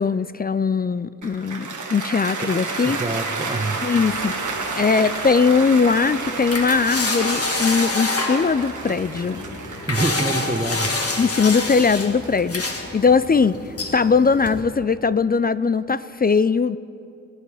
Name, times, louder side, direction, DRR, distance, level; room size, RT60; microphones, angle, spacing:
voice 1, 0.0-3.0 3.8-4.3 4.7-9.4 11.2-13.6 13.9-16.8, left 5 dB, 30° left, 16 dB, 0.4 m, -20 dB
Cheering / Applause, 1.2-13.4, right 3 dB, 75° right, 1.4 m, -31 dB
voice 2, 2.8-3.8 9.9-10.9, right 2 dB, 20° right, 7 dB, 1.1 m, -26 dB
sound 1, 4.1-14.6, left 2 dB, 50° left, 1.7 m, -28 dB
20.5 x 9.4 x 4.9 m, 2.6 s
cardioid pair, 55°, 30 cm